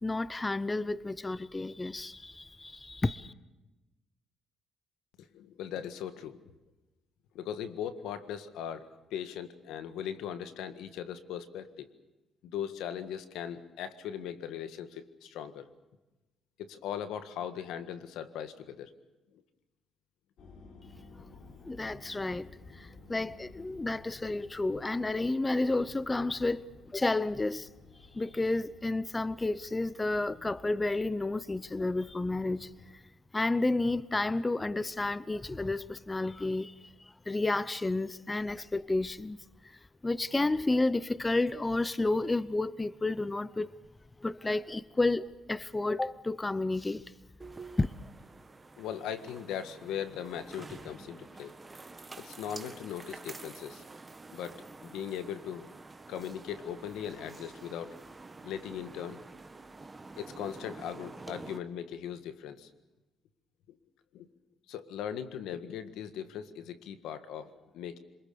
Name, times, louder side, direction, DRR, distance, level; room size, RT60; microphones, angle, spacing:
voice 1, 0.0-3.3 21.7-26.7 26.9-27.7 28.1-32.7 33.3-36.7 37.0-39.4 40.0-43.7 44.2-47.0 47.8-47.9, left 2 dB, 20° left, 0.8 m, -31 dB
voice 2, 5.2-6.4 7.3-11.9 12.4-15.7 16.6-18.9 48.8-51.6 52.2-53.8 54.3-55.7 56.1-58.0 58.4-59.2 60.2-62.7 64.1-64.3 64.7-68.0, left 9 dB, 90° left, 1.7 m, -39 dB
sound 1, 20.4-33.0, left 4 dB, 75° left, 4.2 m, -56 dB
sound 2, 47.4-61.6, right 3 dB, 20° right, 1.9 m, -48 dB
27.0 x 21.0 x 6.9 m
cardioid pair, 90°, 0 cm